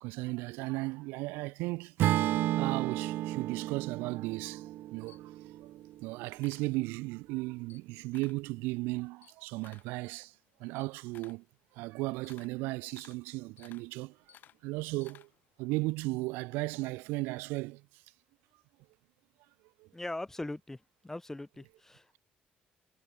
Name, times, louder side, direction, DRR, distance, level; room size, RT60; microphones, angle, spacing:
voice 1, 0.0-1.9 2.6-4.6 4.9-5.2 6.0-10.3 10.6-11.4 11.8-14.1 14.6-15.3 15.6-17.8, right 23 dB, 90° right, 1.0 m, -35 dB
Acoustic guitar / Strum, 2.0-6.2, right 14 dB, 75° right, 0.5 m, -32 dB
Camera, 4.7-7.2 7.6-8.5 8.9-15.6, left 11 dB, 65° left, 4.1 m, -60 dB
voice 2, 19.9-20.8 21.0-22.2, left 2 dB, 10° left, 0.8 m, -40 dB
supercardioid pair, 80°, 3 cm